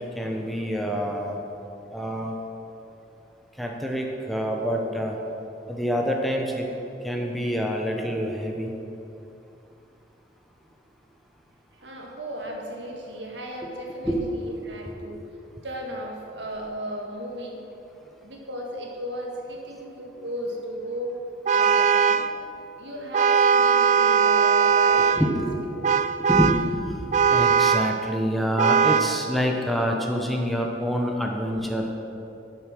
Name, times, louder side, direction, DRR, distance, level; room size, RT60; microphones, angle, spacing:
voice 1, 0.0-1.4 1.9-2.3 3.6-5.2 5.7-6.7 7.0-8.7 14.0-14.2 14.9-15.0 25.1-25.6 26.3-27.0 27.3-31.9, equal, ahead, 0 dB, 0.8 m, -26 dB
voice 2, 11.7-15.3 15.6-17.6 18.2-21.2 21.5-22.3 22.8-25.3, equal, 80° right, 0 dB, 1.8 m, -36 dB
Vehicle horn car horn honking, 21.5-22.3 23.1-25.3 25.8-26.7 27.1-28.0 28.6-29.2, right 6 dB, 40° right, 0.3 m, -20 dB
11.5 x 6.9 x 6.1 m, 2.8 s
head